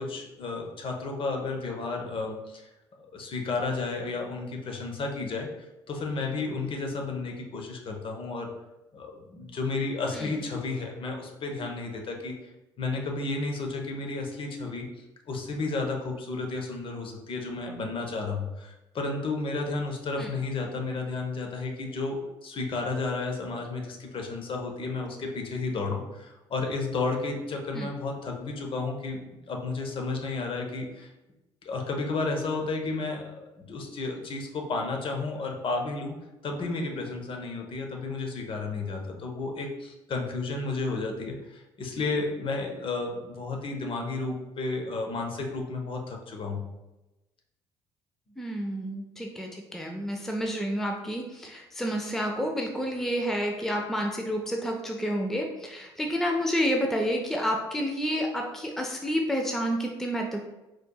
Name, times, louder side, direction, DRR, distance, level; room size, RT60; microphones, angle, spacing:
voice 1, 0.0-2.7 3.0-5.5 5.9-8.5 8.9-12.4 12.8-14.9 15.3-29.2 29.5-31.1 31.6-33.4 33.7-36.1 36.4-46.6, left 3 dB, 40° left, 2 dB, 0.8 m, -32 dB
voice 2, 48.4-60.4, equal, 5° left, 1 dB, 0.5 m, -29 dB
4.3 x 3.0 x 2.2 m, 0.99 s
figure-of-eight pair, 55°, 14 cm